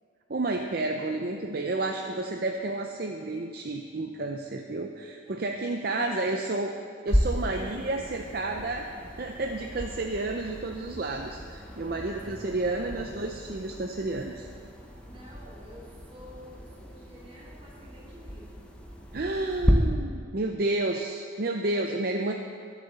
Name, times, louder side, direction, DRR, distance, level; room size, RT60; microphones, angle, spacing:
voice 1, 0.3-6.7 7.0-8.9 9.2-14.5 19.1-22.3, right 2 dB, 50° right, 3 dB, 0.6 m, -31 dB
voice 2, 5.8-6.6 7.5-7.8 11.8-13.0 15.0-18.8 19.0-19.5, equal, 30° right, -5 dB, 2.9 m, -50 dB
sound 1, 7.1-19.7, equal, 5° left, 1.0 m, -34 dB
20.0 x 7.0 x 4.2 m, 2.1 s
head